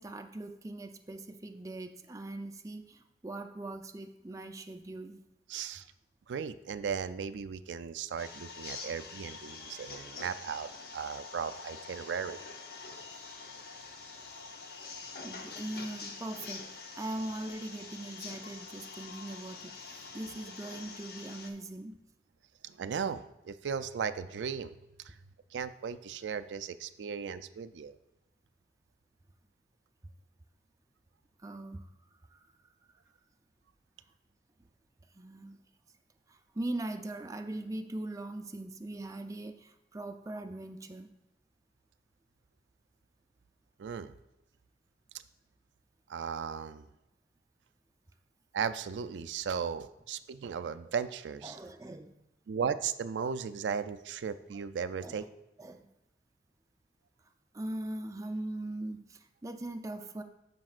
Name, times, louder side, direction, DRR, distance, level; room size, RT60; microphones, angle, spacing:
voice 1, 0.0-5.2 15.2-22.0 31.4-32.7 35.1-35.6 36.3-41.1 51.4-52.2 55.0-55.3 55.6-55.9 57.5-60.2, right 1 dB, 20° right, 6 dB, 0.4 m, -41 dB
voice 2, 5.5-5.8 6.3-12.4 22.6-24.7 25.0-25.2 25.5-28.0 43.8-44.1 46.1-46.9 48.5-51.6 52.5-55.2, right 6 dB, 90° right, 11 dB, 0.4 m, -36 dB
sound 1, 8.2-21.5, left 4 dB, 60° left, 0.8 m, -46 dB
13.5 x 5.3 x 2.4 m, 0.90 s
head